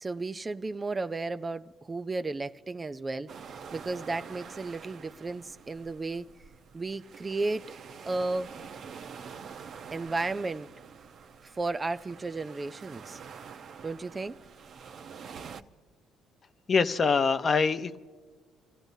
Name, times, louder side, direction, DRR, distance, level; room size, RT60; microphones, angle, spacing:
voice 1, 0.0-6.3 6.7-7.7 8.0-8.5 9.9-10.7 11.4-13.2 13.8-14.4, right 3 dB, 25° right, 0.4 m, -34 dB
sound 1, 3.3-15.6, right 6 dB, 60° right, 0.8 m, -47 dB
voice 2, 16.7-18.0, left 5 dB, 40° left, 0.7 m, -24 dB
26.5 x 16.0 x 2.7 m
supercardioid pair, 80°, 0 cm